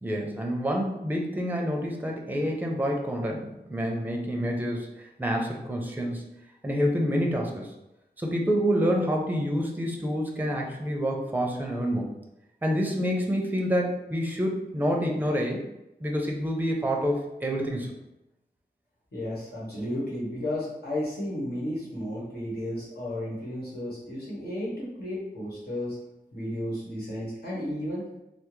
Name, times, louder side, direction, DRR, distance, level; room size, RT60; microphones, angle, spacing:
voice 1, 0.0-4.9 5.2-6.2 6.6-7.7 8.2-12.1 12.6-15.6 16.0-17.9, equal, 10° right, 0 dB, 0.6 m, -27 dB
voice 2, 19.1-26.0 26.3-28.0, left 1 dB, 70° left, -7 dB, 1.4 m, -33 dB
3.4 x 2.0 x 3.1 m, 0.91 s
wide cardioid pair, 70°, 17 cm